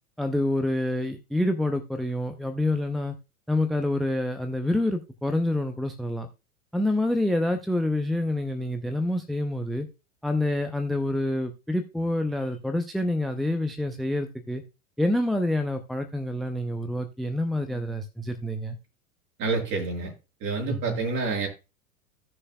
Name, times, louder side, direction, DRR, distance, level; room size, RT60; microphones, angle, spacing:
voice 1, 0.2-3.1 3.5-6.3 6.7-9.9 10.2-14.6 15.0-18.8 20.7-21.0, left 1 dB, ahead, 0.5 m, -27 dB
voice 2, 19.4-20.1 20.4-21.5, right 4 dB, 40° right, 6.0 m, -28 dB
16.5 x 6.5 x 2.2 m
figure-of-eight pair, 95°, 44 cm